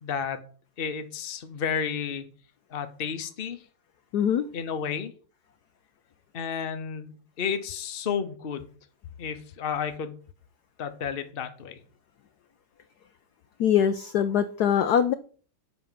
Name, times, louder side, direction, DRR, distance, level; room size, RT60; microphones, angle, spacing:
voice 1, 0.0-0.4 0.8-2.2 2.7-3.6 4.5-5.1 6.3-8.7 9.2-10.1 10.8-11.8, left 7 dB, 40° left, 0.8 m, -32 dB
voice 2, 4.1-4.5 13.6-15.1, left 8 dB, 70° left, 0.9 m, -23 dB
8.5 x 5.5 x 7.4 m
omnidirectional pair, 2.3 m